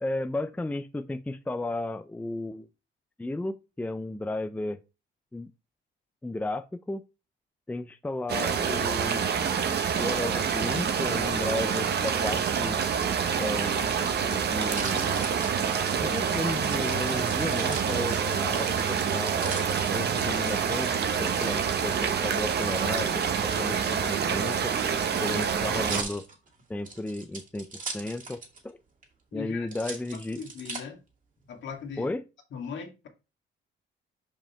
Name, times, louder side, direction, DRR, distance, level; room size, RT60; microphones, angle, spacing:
voice 1, 0.0-2.7 3.2-4.8 5.3-5.5 6.2-7.0 7.7-9.3 10.0-12.8 13.3-15.2 15.9-19.5 19.9-20.9 21.2-24.7 25.2-26.2 26.7-28.8 29.3-30.4 32.0-32.2, left 2 dB, 5° left, 0.5 m, -34 dB
sound 1, 8.3-26.0, right 7 dB, 55° right, 1.1 m, -27 dB
sound 2, 14.7-16.1 16.6-18.6 19.0-20.5 22.3-22.9 23.8-28.7 29.0-29.1 29.7-30.8 31.4-32.0, right 3 dB, 40° right, 2.5 m, -40 dB
voice 2, 29.3-29.9 30.4-31.0 31.5-32.1 32.5-33.1, left 6 dB, 70° left, 2.0 m, -39 dB
5.4 x 5.2 x 4.3 m
cardioid pair, 90°, 20 cm